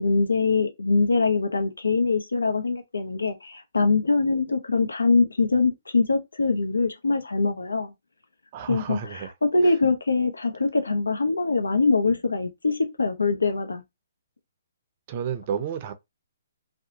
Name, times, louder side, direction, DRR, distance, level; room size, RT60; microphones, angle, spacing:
voice 1, 0.0-7.9 8.7-13.8, left 3 dB, 90° left, 0.6 m, -23 dB
voice 2, 8.5-9.3 15.1-15.9, right 8 dB, 40° right, 0.5 m, -31 dB
2.8 x 2.1 x 2.7 m
hypercardioid pair, 135°, 0 cm